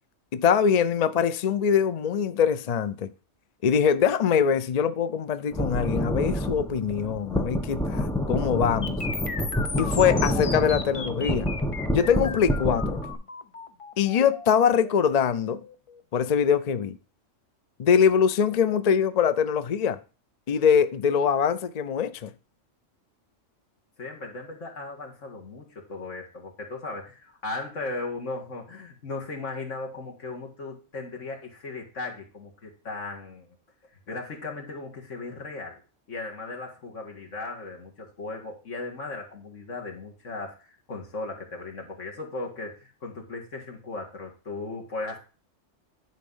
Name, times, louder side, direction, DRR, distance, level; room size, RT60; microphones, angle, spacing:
voice 1, 0.3-3.1 3.6-9.0 9.8-11.5 11.9-13.0 14.0-15.6 16.1-16.9 17.8-20.0 20.5-22.3, left 7 dB, 55° left, 0.4 m, -23 dB
sound 1, 5.5-13.1, equal, 5° left, 0.8 m, -28 dB
sound 2, 8.8-16.8, left 4 dB, 30° left, 0.8 m, -37 dB
voice 2, 24.0-33.6 34.1-35.8 36.1-45.2, left 3 dB, 70° left, 2.2 m, -37 dB
10.5 x 4.2 x 5.5 m
omnidirectional pair, 1.3 m